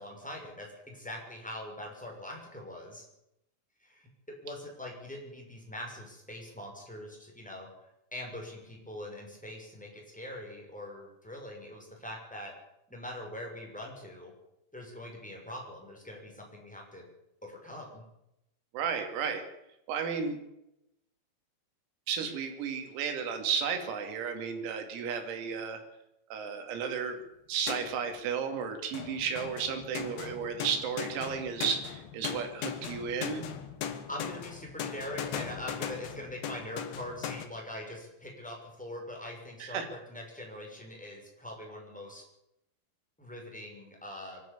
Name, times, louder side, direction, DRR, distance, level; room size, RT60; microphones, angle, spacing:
voice 1, 0.0-3.0 3.8-7.7 8.1-12.5 12.9-14.3 14.7-17.1 17.4-18.0 34.1-42.2 43.2-44.4, left 1 dB, ahead, 0 dB, 5.7 m, -43 dB
voice 2, 18.7-19.5 19.9-20.4 22.1-25.8 26.3-27.2 27.5-33.5 39.6-39.9, right 6 dB, 90° right, 6 dB, 5.4 m, -33 dB
sound 1, 27.7-28.2 28.9-37.5, left 8 dB, 65° left, 2.6 m, -39 dB
24.0 x 12.5 x 8.5 m, 0.84 s
omnidirectional pair, 6.0 m